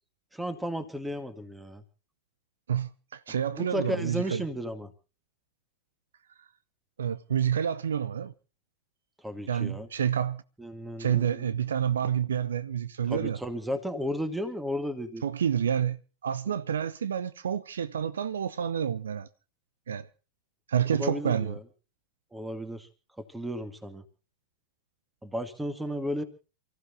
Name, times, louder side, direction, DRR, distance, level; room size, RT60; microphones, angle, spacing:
voice 1, 0.3-1.8 3.5-4.9 9.2-9.9 10.6-11.5 13.1-15.2 16.5-16.6 20.9-21.6 22.3-22.9 23.2-24.0 25.2-26.2, equal, 5° right, 2.4 m, -34 dB
voice 2, 2.7-4.4 7.0-8.3 9.5-10.4 11.0-13.4 15.2-19.3 19.9-20.1 20.7-21.6, right 8 dB, 65° right, 0.8 m, -29 dB
29.0 x 15.0 x 2.7 m
figure-of-eight pair, 90°, 0 cm